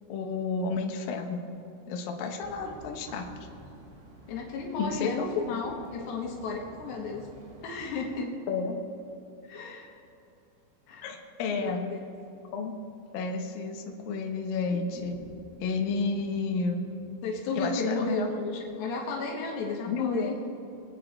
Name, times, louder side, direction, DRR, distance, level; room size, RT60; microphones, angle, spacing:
voice 1, 0.1-1.4 1.9-3.3 4.8-5.8 8.5-8.8 11.0-11.8 12.5-12.7 13.1-15.2 15.6-16.8 17.6-18.3 19.9-20.3, left 4 dB, 70° left, 2 dB, 2.4 m, -31 dB
sound 1, 2.4-8.2, right 2 dB, 70° right, 3.7 m, -50 dB
voice 2, 4.3-7.3 7.6-8.3 9.5-9.9 10.9-11.1 11.5-12.0 17.2-20.4, left 3 dB, 85° left, 0 dB, 3.6 m, -33 dB
sound 2, 14.6-18.7 19.0-19.1, right 1 dB, 20° right, 3.6 m, -51 dB
23.0 x 8.7 x 4.4 m, 2.9 s
omnidirectional pair, 4.9 m